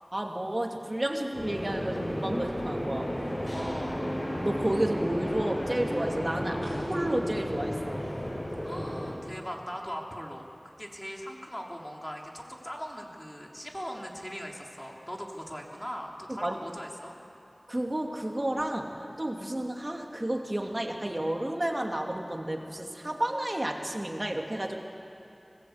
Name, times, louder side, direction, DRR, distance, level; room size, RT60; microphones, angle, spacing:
voice 1, 0.1-3.1 4.4-8.1 16.3-16.5 17.7-24.9, right 1 dB, 40° right, 2 dB, 2.6 m, -31 dB
sound 1, 1.3-9.1, equal, 65° left, 7.8 m, -33 dB
voice 2, 3.5-4.0 8.6-17.1, equal, 15° left, 0 dB, 3.4 m, -40 dB
25.5 x 19.5 x 8.1 m, 2.7 s
wide cardioid pair, 45°, 0 cm